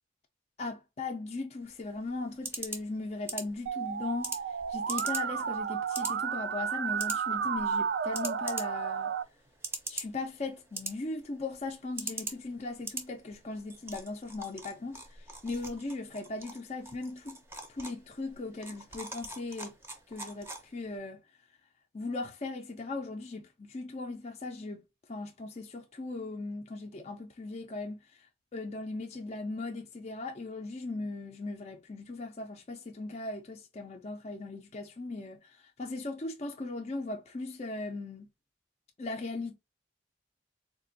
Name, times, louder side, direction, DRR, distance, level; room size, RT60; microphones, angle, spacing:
voice 1, 0.6-4.4 4.7-9.1 9.9-17.4 17.7-19.8 20.1-21.2 21.9-28.3 28.5-38.3 39.0-39.5, left 3 dB, 35° left, 0.5 m, -38 dB
sound 1, 1.6-21.0, right 2 dB, 15° right, 0.6 m, -43 dB
Musical instrument, 3.7-9.2, right 7 dB, 65° right, 0.3 m, -32 dB
3.6 x 2.5 x 2.5 m
head